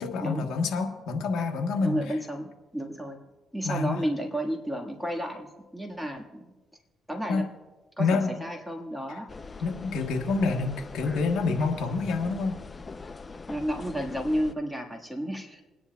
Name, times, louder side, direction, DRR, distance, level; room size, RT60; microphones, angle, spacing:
voice 1, 0.0-2.0 3.6-4.0 7.3-7.5 8.0-8.3 9.6-12.6, left 4 dB, 80° left, 2 dB, 1.2 m, -27 dB
voice 2, 1.8-3.2 3.5-6.5 7.1-7.4 8.0-9.3 13.5-15.6, equal, 5° right, 2 dB, 1.6 m, -32 dB
sound 1, 9.3-14.5, left 4 dB, 30° left, 0.6 m, -42 dB
27.0 x 9.8 x 2.3 m, 1.2 s
cardioid pair, 90°, 0 cm